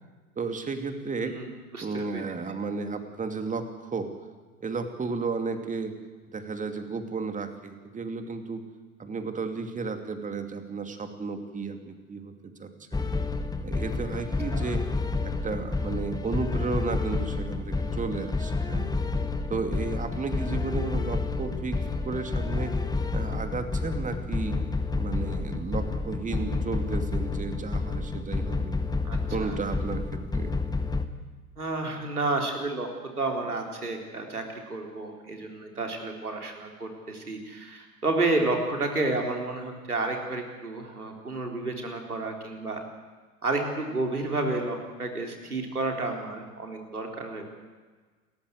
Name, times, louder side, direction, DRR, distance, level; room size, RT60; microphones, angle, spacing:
voice 1, 0.4-1.4 1.8-4.1 4.6-6.0 6.3-8.6 9.0-13.1 13.6-14.8 15.2-18.9 19.5-21.8 22.0-22.7 23.1-24.6 25.0-28.8 29.3-30.6, right 4 dB, 15° right, 7 dB, 2.7 m, -33 dB
voice 2, 1.2-2.2 14.5-14.7 29.0-29.6 31.6-32.9 33.2-34.4 34.7-42.8 43.4-47.5, right 2 dB, 85° right, 2 dB, 4.0 m, -31 dB
sound 1, 12.9-31.0, left 3 dB, 10° left, 1.5 m, -30 dB
29.5 x 14.0 x 8.1 m, 1.4 s
figure-of-eight pair, 85°, 44 cm